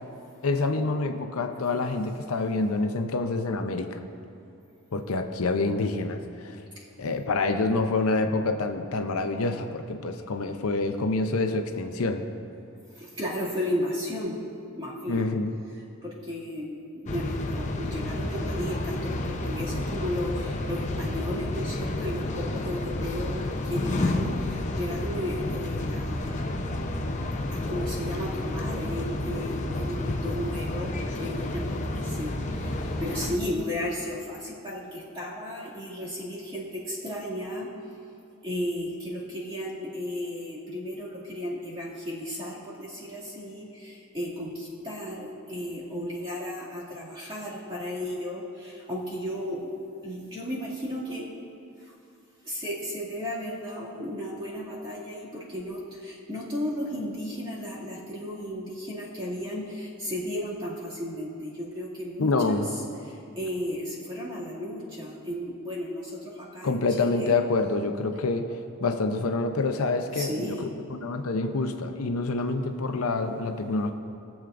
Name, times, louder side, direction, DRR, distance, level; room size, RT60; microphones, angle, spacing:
voice 1, 0.4-4.1 4.9-6.6 7.0-12.2 15.1-15.5 62.2-62.7 66.6-68.5 68.8-73.9, left 3 dB, 75° left, 6 dB, 0.6 m, -27 dB
voice 2, 12.9-14.4 14.8-15.3 16.0-26.4 27.5-37.7 38.4-49.7 50.0-51.3 51.8-51.9 52.4-62.6 63.0-67.3 70.1-70.7, equal, 25° right, -7 dB, 2.2 m, -34 dB
sound 1, 17.1-33.4, left 1 dB, 35° left, 0.6 m, -30 dB
20.0 x 7.2 x 2.5 m, 2.6 s
head